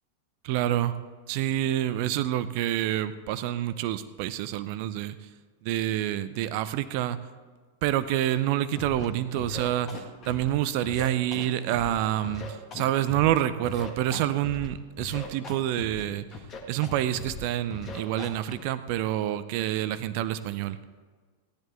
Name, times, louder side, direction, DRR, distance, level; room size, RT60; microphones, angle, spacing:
voice 1, 0.4-1.0 1.3-5.2 5.6-7.2 7.8-16.2 16.7-20.8, right 13 dB, 45° right, 14 dB, 0.6 m, -27 dB
Scratching (performance technique), 8.7-9.1 9.3-10.5 10.8-11.9 12.2-13.3 13.6-14.7 15.0-16.0 16.3-16.9 17.1-17.4 17.7-18.5, left 4 dB, 30° left, 1.7 m, -39 dB
17.0 x 10.5 x 3.3 m, 1.5 s
figure-of-eight pair, 90°, 0 cm